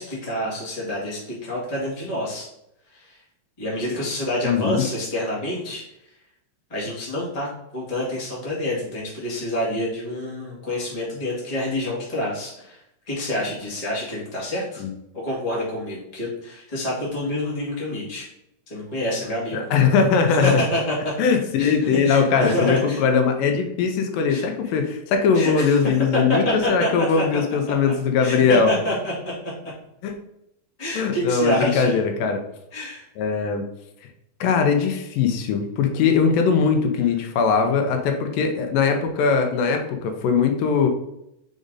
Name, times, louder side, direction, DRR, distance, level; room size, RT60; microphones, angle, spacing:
voice 1, 0.0-2.5 2.9-3.2 3.6-5.8 6.7-12.8 13.1-14.8 15.1-18.3 18.7-19.6 20.2-21.1 21.6-21.7 22.0-23.0 24.3-24.4 25.3-25.8 26.3-27.2 28.2-29.1 29.4-29.5 30.8-32.0 32.7-33.1, left 1 dB, 15° left, -6 dB, 1.7 m, -27 dB
voice 2, 4.4-4.9 14.8-14.9 19.5-20.6 21.2-26.4 26.7-28.7 30.0-30.1 30.9-32.4 33.2-33.7 34.4-40.9, left 5 dB, 85° left, 5 dB, 2.5 m, -20 dB
5.1 x 4.9 x 4.0 m, 0.81 s
omnidirectional pair, 3.9 m